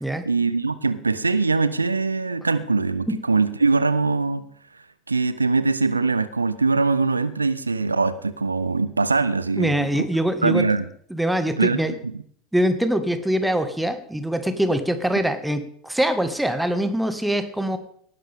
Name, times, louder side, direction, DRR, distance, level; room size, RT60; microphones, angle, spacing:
voice 1, 0.3-4.4 5.1-9.9 10.4-10.8 11.6-11.8, right 3 dB, 85° right, 16 dB, 0.5 m, -22 dB
voice 2, 9.6-10.7 11.1-11.9 12.5-17.8, right 1 dB, 5° right, 9 dB, 1.6 m, -23 dB
18.5 x 11.0 x 3.6 m, 0.63 s
figure-of-eight pair, 75°, 0 cm